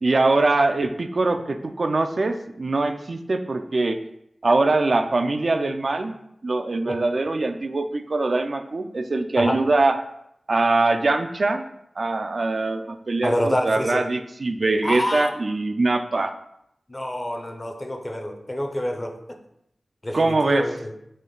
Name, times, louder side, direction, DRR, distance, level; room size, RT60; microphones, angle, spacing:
voice 1, 0.0-4.0 4.4-6.2 6.4-10.0 10.5-11.7 12.0-16.3 20.1-20.7, right 2 dB, 55° right, 7 dB, 0.3 m, -22 dB
voice 2, 13.2-14.1 14.8-15.3 16.9-19.4 20.0-20.9, left 1 dB, 25° left, 4 dB, 0.6 m, -27 dB
4.2 x 2.9 x 3.8 m, 0.78 s
wide cardioid pair, 65°, 0 cm